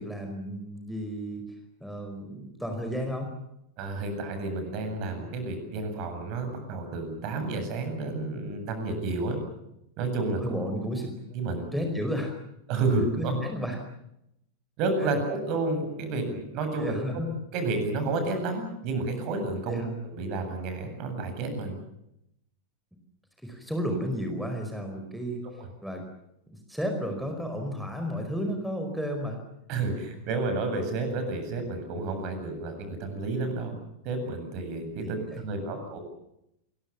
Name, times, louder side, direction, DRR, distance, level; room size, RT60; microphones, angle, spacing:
voice 1, 0.0-1.4 1.8-3.3 10.4-11.1 11.7-12.3 13.2-13.8 15.0-15.2 16.8-17.3 19.7-20.0 23.4-25.4 25.8-26.0 26.5-29.4 35.0-35.8, equal, ahead, 4 dB, 4.9 m, -33 dB
voice 2, 3.8-9.4 10.0-10.6 11.3-11.7 12.7-13.4 14.8-16.9 17.5-21.8 25.6-25.7 29.7-33.7 34.0-36.0, right 3 dB, 40° right, 7 dB, 8.0 m, -30 dB
29.0 x 23.0 x 7.2 m, 0.81 s
figure-of-eight pair, 90°, 0 cm